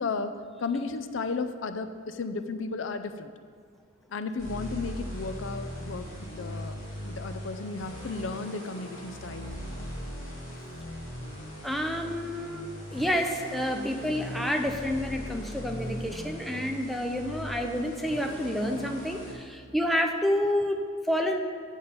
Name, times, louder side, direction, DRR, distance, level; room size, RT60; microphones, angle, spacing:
voice 1, 0.0-3.3 4.1-6.1 6.4-6.7 7.1-9.5, left 4 dB, 65° left, 10 dB, 0.5 m, -34 dB
sound 1, 4.4-19.3, equal, 35° left, 2.6 m, -39 dB
voice 2, 11.6-12.7 12.9-21.4, equal, ahead, 3 dB, 0.6 m, -29 dB
8.8 x 5.4 x 6.7 m, 2.2 s
head